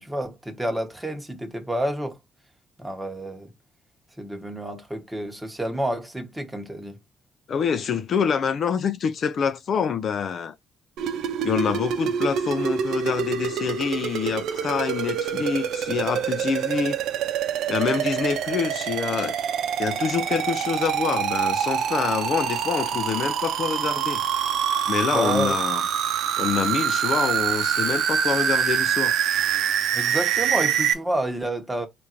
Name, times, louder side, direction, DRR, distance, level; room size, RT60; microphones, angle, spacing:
voice 1, 0.0-2.1 2.8-3.5 4.2-7.0 25.1-25.6 29.9-31.9, right 1 dB, 10° right, 1.1 m, -29 dB
voice 2, 7.5-10.5 11.4-17.0 17.7-19.4 19.8-24.2 24.9-25.8 26.4-29.2, left 6 dB, 60° left, 0.4 m, -26 dB
sound 1, 11.0-30.9, right 9 dB, 80° right, 0.6 m, -25 dB
3.5 x 2.6 x 4.3 m
cardioid pair, 90°, 0 cm